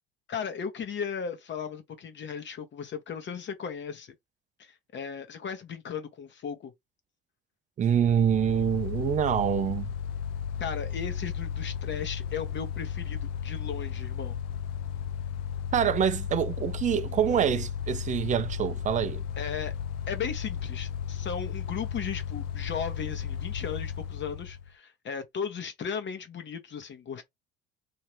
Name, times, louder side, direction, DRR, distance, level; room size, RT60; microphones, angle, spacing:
voice 1, 0.3-4.1 4.6-6.7 10.6-14.4 19.4-19.7 20.1-27.2, left 6 dB, 40° left, 1.0 m, -36 dB
Mechanical fan, 7.8-24.7, left 8 dB, 70° left, 0.5 m, -34 dB
voice 2, 7.8-9.9 15.7-19.2, right 8 dB, 25° right, 0.5 m, -26 dB
2.8 x 2.7 x 3.2 m
hypercardioid pair, 70°, 29 cm